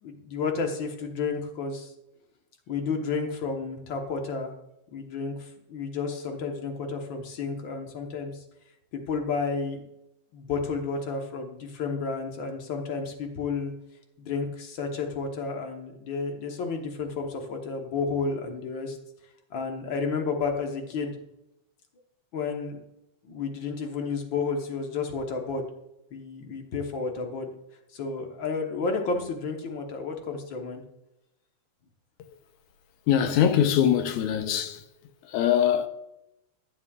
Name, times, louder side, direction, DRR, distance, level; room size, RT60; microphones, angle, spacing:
voice 1, 0.0-1.9 2.7-4.5 4.9-8.3 8.9-9.8 10.3-13.7 14.2-19.0 19.5-21.2 22.3-22.8 23.2-25.7 26.1-27.5 27.9-30.8, left 4 dB, 55° left, 1.4 m, -31 dB
voice 2, 33.1-34.8 35.2-35.9, left 9 dB, 80° left, 2.1 m, -23 dB
12.0 x 8.8 x 2.4 m
omnidirectional pair, 3.4 m